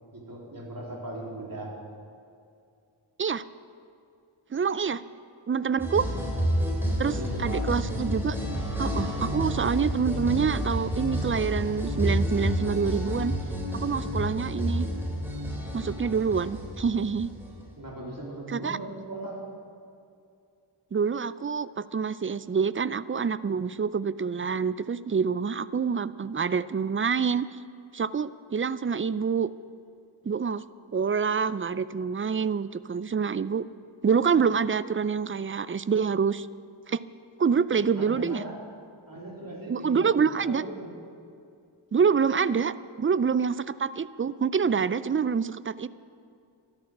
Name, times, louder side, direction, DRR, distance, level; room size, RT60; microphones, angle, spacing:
voice 1, 0.1-1.7 7.1-7.6 17.8-19.4 37.9-38.6 39.1-40.9, right 1 dB, 45° right, -3 dB, 3.5 m, -38 dB
voice 2, 4.5-5.0 5.5-6.1 7.0-8.4 8.8-13.3 13.7-14.9 15.7-17.3 18.5-18.8 20.9-27.6 27.9-29.5 30.2-30.6 30.9-33.7 34.0-36.5 36.9-37.0 37.4-38.4 39.7-40.6 41.9-45.9, right 6 dB, 30° right, 16 dB, 0.4 m, -26 dB
sound 1, 5.8-17.7, equal, 5° right, 3.6 m, -30 dB
13.0 x 11.5 x 6.1 m, 2.4 s
wide cardioid pair, 45°, 48 cm